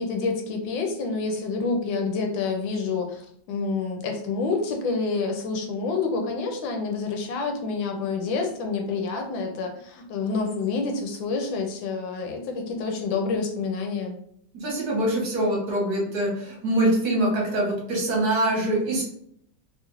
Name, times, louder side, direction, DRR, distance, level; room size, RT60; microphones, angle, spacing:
voice 1, 0.0-14.2, left 4 dB, 85° left, 3 dB, 1.4 m, -28 dB
voice 2, 14.5-19.0, right 1 dB, 55° right, -3 dB, 1.5 m, -24 dB
3.4 x 2.4 x 2.9 m, 0.68 s
omnidirectional pair, 2.0 m